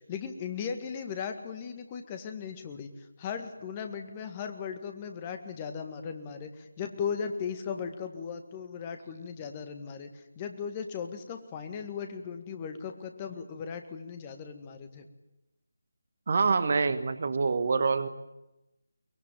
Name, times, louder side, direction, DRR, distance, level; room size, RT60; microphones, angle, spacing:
voice 1, 0.0-15.1, left 6 dB, 20° left, 7 dB, 1.9 m, -37 dB
voice 2, 16.3-18.1, right 4 dB, 40° right, 12 dB, 1.4 m, -26 dB
23.5 x 21.5 x 9.3 m, 0.95 s
figure-of-eight pair, 160°, 0 cm